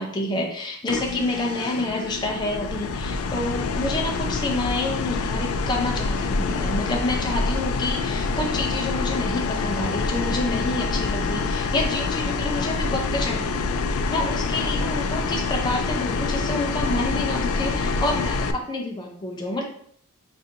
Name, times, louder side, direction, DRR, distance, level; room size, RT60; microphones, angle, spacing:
voice 1, 0.0-13.6 14.1-19.6, left 2 dB, 20° left, 1 dB, 0.5 m, -28 dB
sound 1, 0.9-18.5, left 4 dB, 90° left, 0.3 m, -26 dB
4.9 x 2.5 x 2.7 m, 0.64 s
head